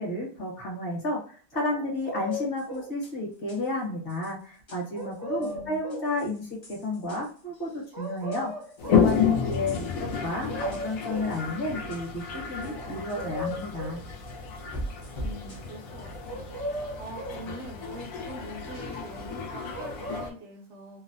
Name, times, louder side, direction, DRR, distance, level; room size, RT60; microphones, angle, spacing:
voice 1, 0.0-8.5 8.9-14.0, left 1 dB, 45° left, -3 dB, 1.1 m, -32 dB
sound 1, 1.5-2.9 4.9-6.1 7.9-9.1 10.2-10.3 10.4-11.3 12.6-14.0 16.3-17.4 19.7-20.3, left 1 dB, 35° right, 0.4 m, -36 dB
sound 2, 2.3-16.4, right 1 dB, 30° left, 0.5 m, -45 dB
voice 2, 5.4-5.8 10.7-10.9 15.2-21.0, right 1 dB, 65° right, 2 dB, 0.8 m, -44 dB
Toilet flush, 8.8-20.3, left 6 dB, 75° left, 1.0 m, -31 dB
2.7 x 2.0 x 2.6 m, 0.42 s
omnidirectional pair, 1.5 m